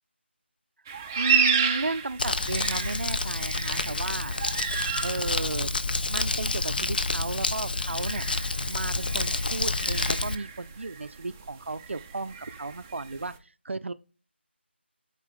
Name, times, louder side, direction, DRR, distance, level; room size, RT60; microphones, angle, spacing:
sound 1, 0.9-13.4, right 6 dB, 15° right, 0.4 m, -33 dB
voice 1, 1.2-4.3 5.0-5.7 6.1-8.3 8.7-13.3 13.6-13.9, right 3 dB, 80° right, 0.4 m, -34 dB
Crumpling crinkling, 2.2-10.4, left 3 dB, 50° left, 0.5 m, -29 dB
8.2 x 4.1 x 3.6 m
figure-of-eight pair, 165°, 6 cm